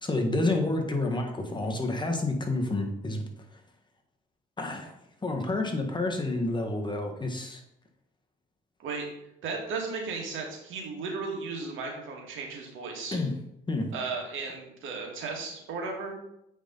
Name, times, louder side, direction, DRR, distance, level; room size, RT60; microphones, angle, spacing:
voice 1, 0.0-3.2 4.6-4.9 5.2-7.6 13.1-13.3 13.7-13.9, left 2 dB, 25° left, 3 dB, 1.5 m, -29 dB
voice 2, 9.4-13.2 13.9-16.1, right 4 dB, 80° right, 0 dB, 2.2 m, -35 dB
8.0 x 5.3 x 4.0 m, 0.78 s
cardioid pair, 90°, 20 cm